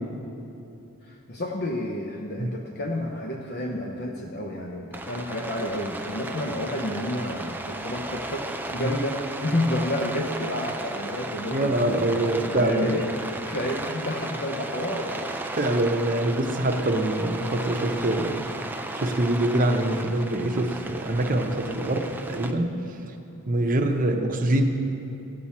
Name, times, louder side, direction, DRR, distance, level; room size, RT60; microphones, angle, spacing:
voice 1, 1.1-15.3 24.0-24.3, left 1 dB, 45° left, 0 dB, 0.7 m, -30 dB
Rain, 4.9-22.5, right 2 dB, 10° right, 0.4 m, -35 dB
voice 2, 11.5-13.0 15.5-18.4 18.9-22.7 23.5-24.6, right 1 dB, 40° right, 4 dB, 0.8 m, -24 dB
16.0 x 7.5 x 4.3 m, 2.8 s
head